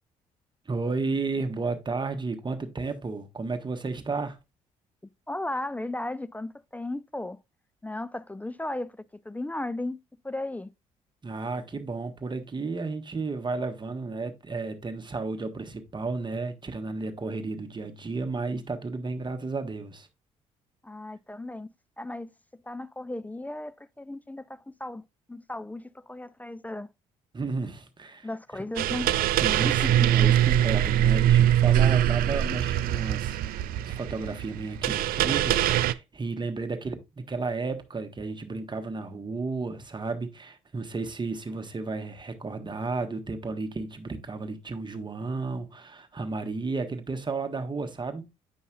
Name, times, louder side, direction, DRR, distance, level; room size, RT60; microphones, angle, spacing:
voice 1, 0.7-4.4 11.2-20.1 27.3-28.3 29.4-48.3, right 3 dB, 25° right, 1.1 m, -33 dB
voice 2, 5.0-7.4 7.8-10.0 10.2-10.7 20.8-22.3 22.7-25.0 25.3-26.9 28.2-29.2 29.7-30.3, left 2 dB, 10° left, 0.3 m, -35 dB
sound 1, 28.8-35.9, right 12 dB, 60° right, 0.4 m, -23 dB
8.5 x 5.3 x 2.3 m
hypercardioid pair, 50°, 17 cm